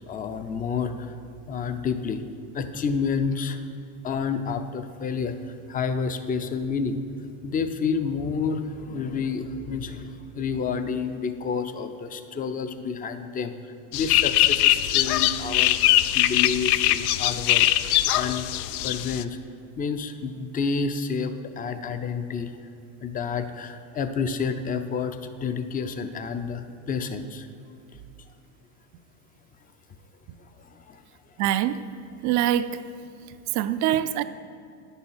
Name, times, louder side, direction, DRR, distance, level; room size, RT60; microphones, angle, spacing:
voice 1, 0.1-1.1 1.5-2.2 2.5-3.7 4.0-7.0 7.4-13.5 13.9-15.9 16.1-18.5 18.8-19.4 19.8-22.5 23.0-27.5 30.6-31.0, left 5 dB, 20° left, 9 dB, 0.5 m, -29 dB
sound 1, 13.9-19.2, left 14 dB, 75° left, 0.5 m, -22 dB
voice 2, 31.4-31.9 32.2-32.8 33.5-34.2, right 11 dB, 40° right, 12 dB, 0.5 m, -24 dB
9.3 x 7.0 x 5.7 m, 2.4 s
supercardioid pair, 105°, 45 cm